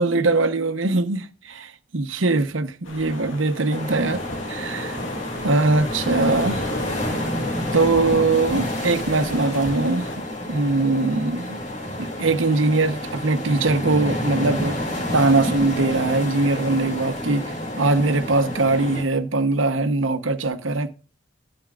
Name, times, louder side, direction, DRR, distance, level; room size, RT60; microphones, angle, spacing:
voice 1, 0.0-4.2 4.5-5.0 5.4-6.6 7.7-11.6 12.0-14.8 15.1-20.9, right 3 dB, 90° right, 0.9 m, -21 dB
sound 1, 2.8-10.2, left 2 dB, 85° left, 2.1 m, -36 dB
sound 2, 3.7-19.0, left 1 dB, 35° left, 2.6 m, -29 dB
13.0 x 8.7 x 2.4 m
head